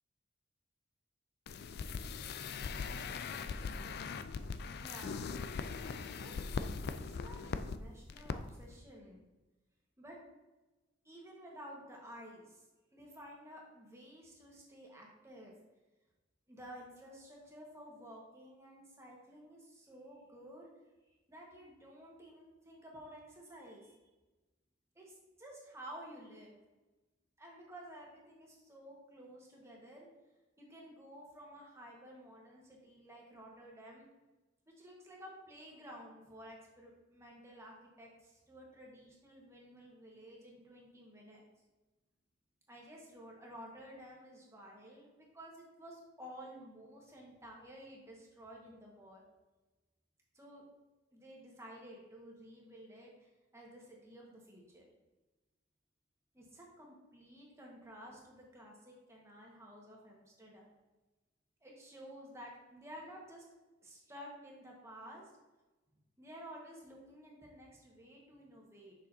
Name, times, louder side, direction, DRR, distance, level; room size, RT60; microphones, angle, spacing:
sound 1, 1.5-7.8 8.1-8.4 8.6-8.7, left 5 dB, 55° left, 0.4 m, -40 dB
voice 1, 4.8-5.3 5.8-6.5 7.0-9.2 10.0-10.2 11.0-12.6 12.9-15.5 16.5-20.7 21.3-24.0 24.9-26.5 27.4-30.1 30.6-34.1 34.8-41.4 42.7-49.2 50.3-50.6 51.1-54.8 56.3-60.7 61.6-63.4 63.8-65.3 66.2-68.9, equal, 15° right, -2 dB, 1.4 m, -53 dB
7.1 x 6.1 x 2.7 m, 1.1 s
head